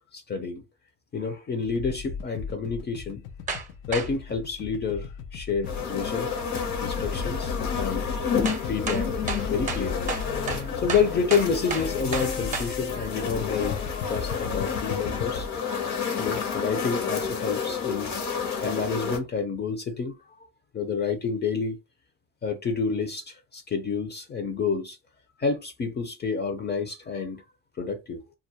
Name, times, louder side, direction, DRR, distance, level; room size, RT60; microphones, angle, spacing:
voice 1, 0.1-0.6 1.1-3.2 3.9-6.3 6.8-8.1 8.6-9.1 9.5-10.1 10.8-13.8 14.1-15.5 16.2-18.2 18.6-20.3 20.7-21.8 22.4-25.0 25.4-27.4 27.8-28.2, left 5 dB, 35° left, 0.5 m, -29 dB
sound 1, 1.6-15.5, left 5 dB, 90° left, 0.5 m, -36 dB
sound 2, 3.5-3.7 3.9-4.1 6.6-6.7 8.4-12.7, right 4 dB, 25° right, 0.6 m, -32 dB
sound 3, 5.6-19.2, left 6 dB, 65° left, 0.8 m, -30 dB
2.3 x 2.1 x 2.8 m
cardioid pair, 90°, 30 cm